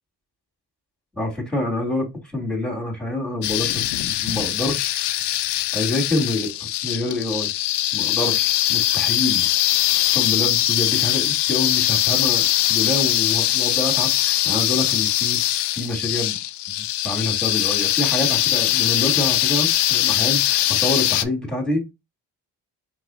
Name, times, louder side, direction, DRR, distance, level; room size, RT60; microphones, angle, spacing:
voice 1, 1.2-2.0 2.3-5.1 5.7-7.5 7.9-9.5 10.1-16.4 16.7-21.9, left 1 dB, ahead, 2.5 m, -27 dB
sound 1, 3.4-21.2, left 14 dB, 70° left, 0.5 m, -21 dB
4.7 x 3.9 x 2.5 m
cardioid pair, 65°, 43 cm